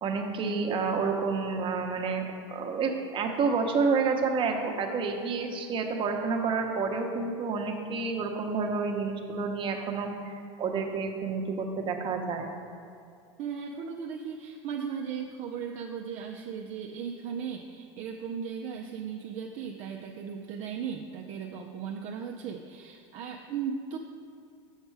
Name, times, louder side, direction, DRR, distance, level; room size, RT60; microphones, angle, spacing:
voice 1, 0.0-12.5, right 4 dB, 35° right, 3 dB, 1.0 m, -29 dB
voice 2, 13.4-24.0, right 7 dB, 50° right, 1 dB, 0.5 m, -37 dB
7.3 x 5.3 x 4.7 m, 2.4 s
supercardioid pair, 110°, 16 cm